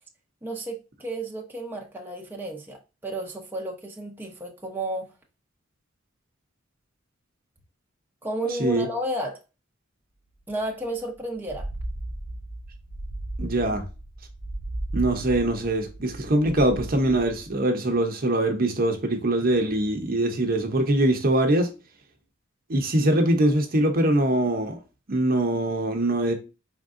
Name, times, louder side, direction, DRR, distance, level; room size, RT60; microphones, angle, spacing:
voice 1, 0.4-2.8 3.0-5.1 8.2-9.4 10.5-11.7, right 1 dB, 10° right, 0.8 m, -32 dB
sound 1, 10.5-10.6 10.8-10.9 11.4-17.5, right 1 dB, 55° left, 2.3 m, -35 dB
voice 2, 13.4-13.8 14.9-21.7 22.7-24.8 25.1-26.3, right 1 dB, 45° right, 0.9 m, -23 dB
5.1 x 3.7 x 2.6 m
head